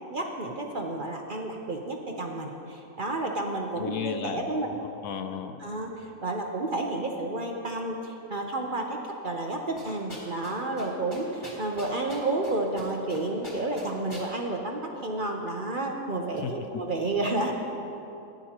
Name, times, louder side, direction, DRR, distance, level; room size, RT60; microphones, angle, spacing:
voice 1, 0.0-4.7 5.6-9.0 9.2-17.5, right 2 dB, 40° right, 1 dB, 0.8 m, -31 dB
voice 2, 3.8-4.5 4.9-5.6 16.4-16.8, left 8 dB, 70° left, 7 dB, 1.1 m, -34 dB
sound 1, 9.8-10.5 10.8-10.9 11.1-12.5 12.8-13.2 13.4-14.3, equal, 20° left, 3.2 m, -42 dB
18.5 x 10.5 x 2.9 m, 2.8 s
omnidirectional pair, 1.6 m